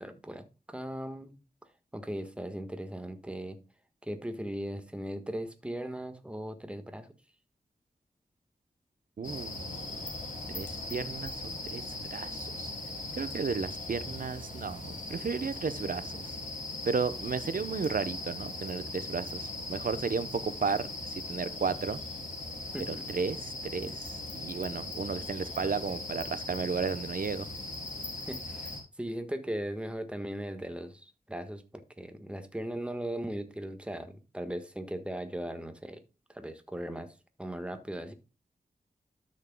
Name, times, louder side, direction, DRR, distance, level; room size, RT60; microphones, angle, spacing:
voice 1, 0.0-1.3 1.9-3.6 4.0-7.1 22.7-23.0 28.3-36.0 36.3-38.1, right 1 dB, 5° right, 1.4 m, -38 dB
sound 1, 9.2-28.8, left 2 dB, 55° left, 3.3 m, -39 dB
voice 2, 9.2-10.0 10.5-12.7 13.2-16.4 16.8-22.0 22.9-27.5, right 5 dB, 65° right, 0.8 m, -34 dB
12.5 x 6.6 x 2.2 m
wide cardioid pair, 90°, 15 cm